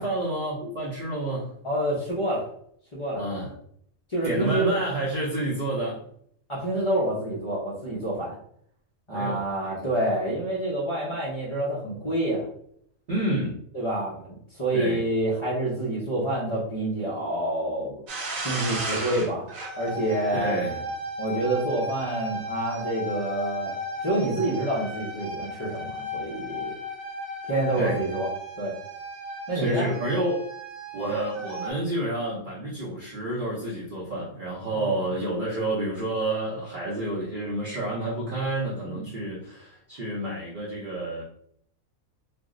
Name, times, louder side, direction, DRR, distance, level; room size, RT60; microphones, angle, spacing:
voice 1, 0.0-1.5 3.2-3.5 4.2-6.0 9.1-9.8 13.1-13.6 14.7-15.0 20.3-20.9 27.8-28.0 29.5-30.5 30.9-41.2, right 1 dB, 45° right, -6 dB, 0.8 m, -29 dB
voice 2, 1.6-2.4 2.9-3.2 4.1-4.7 6.5-8.4 9.1-12.4 13.7-18.0 18.4-19.5 19.8-20.5 21.2-23.8 24.0-26.7 27.5-28.3 28.6-28.7 29.5-29.9 34.7-35.0 38.8-39.1, right 1 dB, 35° left, -6 dB, 0.5 m, -27 dB
sound 1, 18.1-31.7, equal, 75° right, 1.1 m, -35 dB
2.6 x 2.0 x 3.6 m, 0.67 s
omnidirectional pair, 1.4 m